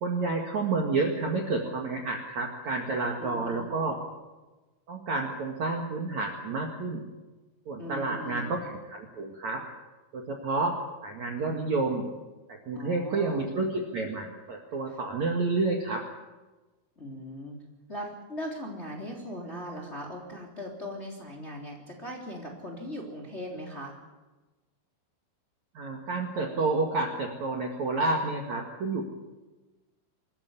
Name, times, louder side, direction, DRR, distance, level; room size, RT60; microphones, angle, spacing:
voice 1, 0.0-4.0 4.9-7.0 7.7-9.6 10.1-12.1 12.5-16.1 25.7-29.0, right 3 dB, 50° right, 2 dB, 2.5 m, -30 dB
voice 2, 3.2-3.7 7.8-8.6 12.7-13.5 14.9-15.0 17.0-17.6 17.9-24.0, equal, 15° left, 0 dB, 3.0 m, -39 dB
25.0 x 14.5 x 9.7 m, 1.2 s
omnidirectional pair, 5.5 m